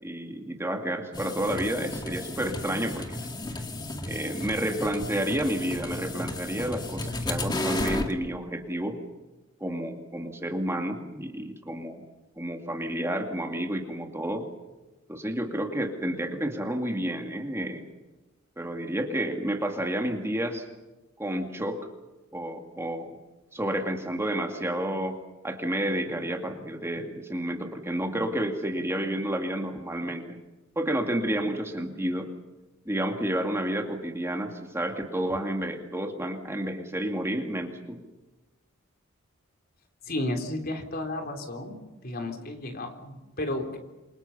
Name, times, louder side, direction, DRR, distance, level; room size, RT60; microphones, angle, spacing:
voice 1, 0.0-3.3 4.0-9.0 9.6-12.0 12.4-14.5 15.1-17.8 18.6-20.7 21.2-21.8 22.3-23.2 23.5-25.2 25.4-30.4 30.8-32.3 32.9-38.0, right 1 dB, 15° right, 3 dB, 2.3 m, -30 dB
sound 1, 1.1-8.1, left 1 dB, 20° left, 2.1 m, -33 dB
voice 2, 40.1-41.8 42.0-43.8, left 1 dB, 45° left, 4 dB, 3.8 m, -32 dB
28.5 x 24.5 x 5.7 m, 1.1 s
head